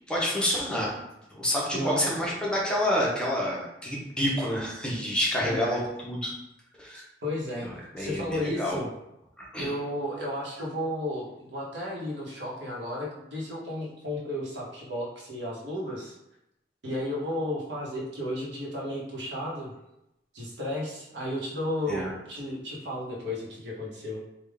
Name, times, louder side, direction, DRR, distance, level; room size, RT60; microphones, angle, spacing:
voice 1, 0.1-1.0 1.3-6.3 6.8-7.0 7.6-8.8 9.4-9.7 21.9-22.1, equal, 5° left, -4 dB, 0.7 m, -28 dB
voice 2, 1.7-2.1 5.4-5.8 7.2-7.7 8.0-8.9 9.6-16.1 16.8-19.7 20.3-24.2, left 1 dB, 80° right, -3 dB, 1.0 m, -33 dB
3.5 x 2.3 x 3.4 m, 0.87 s
head